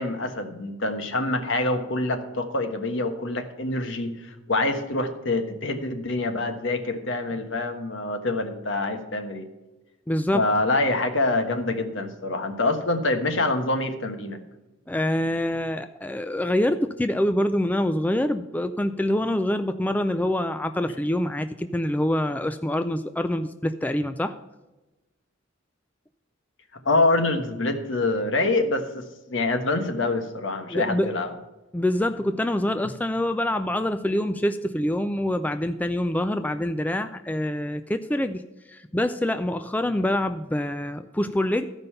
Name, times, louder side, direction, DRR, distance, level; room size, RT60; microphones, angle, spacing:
voice 1, 0.0-9.5 10.3-14.4 26.8-31.3, left 2 dB, 65° left, 6 dB, 1.3 m, -26 dB
voice 2, 10.1-10.5 14.9-24.4 30.7-31.2 31.7-38.4 38.7-41.7, left 1 dB, 10° left, 9 dB, 0.3 m, -25 dB
14.0 x 5.3 x 5.5 m, 1.0 s
head